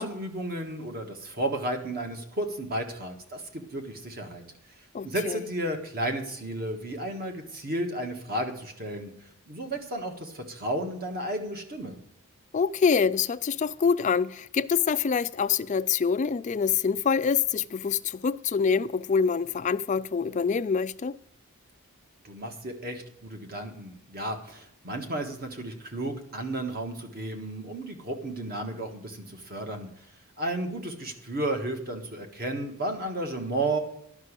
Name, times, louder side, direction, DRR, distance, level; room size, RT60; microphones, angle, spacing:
voice 1, 0.0-9.1 9.5-12.0 22.2-29.9 30.4-33.8, right 1 dB, 40° right, 1.6 m, -33 dB
voice 2, 4.9-5.4 12.5-21.2, left 6 dB, 35° left, 0.3 m, -25 dB
11.0 x 6.1 x 8.1 m
head